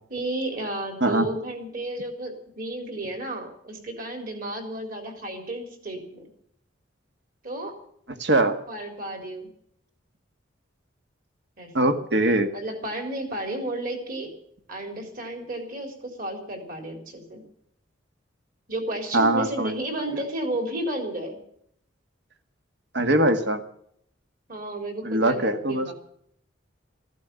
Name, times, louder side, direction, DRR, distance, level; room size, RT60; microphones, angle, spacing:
voice 1, 0.1-6.2 7.4-7.8 8.7-9.5 11.6-11.9 12.5-14.3 14.7-17.4 18.7-21.4 24.5-25.9, right 1 dB, 45° right, 4 dB, 3.9 m, -32 dB
voice 2, 8.2-8.6 11.7-12.5 19.1-19.7 22.9-23.6 25.0-25.9, right 1 dB, 60° right, 7 dB, 1.7 m, -22 dB
15.0 x 11.5 x 8.2 m, 0.68 s
head